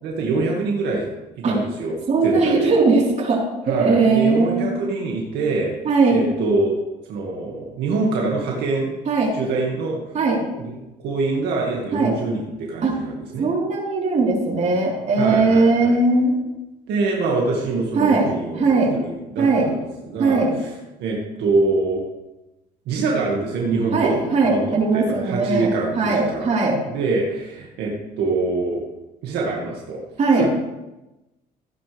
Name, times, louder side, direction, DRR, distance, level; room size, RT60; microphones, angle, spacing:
voice 1, 0.0-1.0 1.4-1.9 2.2-2.7 3.7-5.7 6.1-6.7 7.1-8.9 9.3-10.0 10.6-13.5 15.2-16.0 16.9-20.4 21.0-22.0 22.9-24.2 24.4-26.6 26.9-28.8 29.2-30.0 30.3-30.5, right 3 dB, 80° right, -2 dB, 2.2 m, -24 dB
voice 2, 2.1-4.7 5.8-6.2 9.1-9.4 10.1-10.4 11.9-12.1 12.8-13.0 13.4-16.4 17.9-18.9 19.4-19.7 20.2-20.6 23.9-26.8 30.2-30.5, right 3 dB, 45° right, -3 dB, 4.3 m, -19 dB
15.5 x 10.0 x 3.5 m, 1.0 s
cardioid pair, 110°, 17 cm